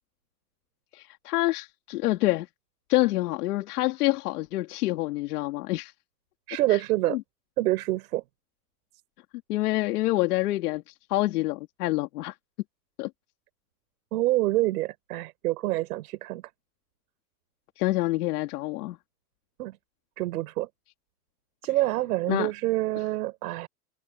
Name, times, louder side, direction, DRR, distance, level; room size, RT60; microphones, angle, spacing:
voice 1, 0.9-2.5 2.9-5.9 6.7-6.8 7.1-7.2 9.5-12.3 13.0-13.1 17.8-19.0 22.3-22.5, left 18 dB, 85° left, 2.3 m, -27 dB
voice 2, 6.5-7.2 7.6-8.2 14.1-16.5 19.6-19.8 20.2-20.7 21.6-23.7, right 17 dB, 85° right, 4.8 m, -27 dB
supercardioid pair, 145°, 44 cm